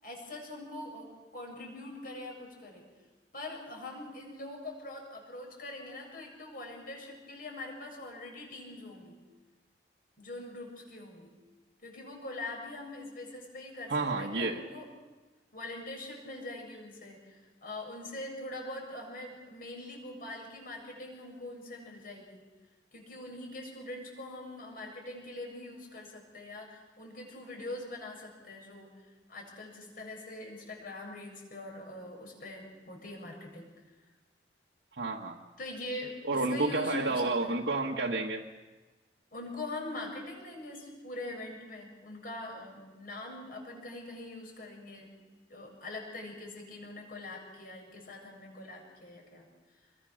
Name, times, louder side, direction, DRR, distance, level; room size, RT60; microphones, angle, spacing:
voice 1, 0.0-2.8 3.3-9.2 10.2-11.3 11.8-14.9 15.5-22.4 22.9-28.9 29.3-33.7 35.6-37.6 39.3-45.1 45.5-49.5, left 2 dB, 50° left, 1 dB, 7.6 m, -43 dB
voice 2, 13.9-14.7 35.0-35.4 36.2-38.5, right 3 dB, 70° right, -1 dB, 1.4 m, -30 dB
26.5 x 22.0 x 6.4 m, 1.2 s
head